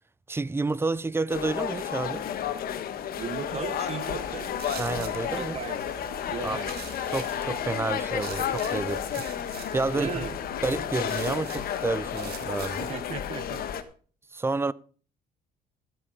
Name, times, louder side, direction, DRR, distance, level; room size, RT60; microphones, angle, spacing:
voice 1, 0.3-2.3 4.8-5.6 6.4-6.6 7.1-9.2 9.7-10.3 10.6-12.9 14.3-14.7, right 3 dB, 15° right, 0.5 m, -29 dB
sound 1, 1.3-13.8, left 9 dB, 60° left, 1.3 m, -32 dB
voice 2, 3.1-4.6 5.3-5.8 6.3-6.8 9.9-10.4 12.9-13.7, right 7 dB, 40° right, 1.0 m, -36 dB
sound 2, 4.4-13.0, right 9 dB, 70° right, 2.1 m, -44 dB
13.5 x 8.8 x 5.0 m
cardioid pair, 110°, 17 cm